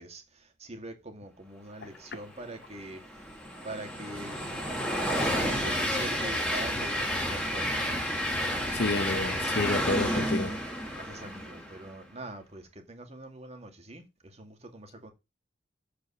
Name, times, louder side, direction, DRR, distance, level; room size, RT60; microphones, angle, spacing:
voice 1, 0.0-3.4 3.6-4.4 5.1-8.0 11.0-15.1, right 2 dB, 35° right, 2.2 m, -43 dB
Train, 2.5-11.9, equal, 5° left, 2.6 m, -31 dB
voice 2, 8.7-10.6, left 2 dB, 60° left, 0.8 m, -30 dB
7.7 x 5.2 x 7.1 m
head